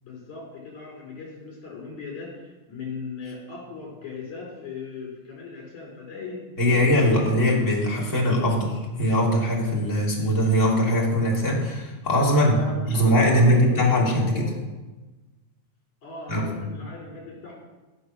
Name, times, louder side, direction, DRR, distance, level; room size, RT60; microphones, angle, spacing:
voice 1, 0.0-7.3 12.4-14.5 16.0-17.5, left 4 dB, 75° left, -3 dB, 6.4 m, -38 dB
voice 2, 6.6-12.6 12.9-14.4 16.3-16.6, equal, 25° left, -3 dB, 3.1 m, -21 dB
17.5 x 6.9 x 6.3 m, 1.2 s
omnidirectional pair, 3.3 m